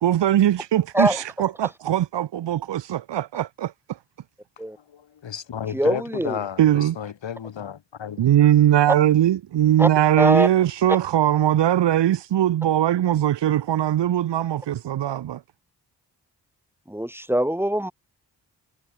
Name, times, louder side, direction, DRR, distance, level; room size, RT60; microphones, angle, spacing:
voice 1, 0.0-3.7 6.6-7.0 8.2-15.4, right 12 dB, 70° right, 0.8 m, -20 dB
voice 2, 4.8-8.3 8.9-9.0, left 8 dB, 80° left, 4.4 m, -33 dB
voice 3, 5.7-6.4 9.8-9.9 10.2-10.5 16.9-17.9, right 1 dB, 5° right, 0.9 m, -22 dB
cardioid pair, 50°, 44 cm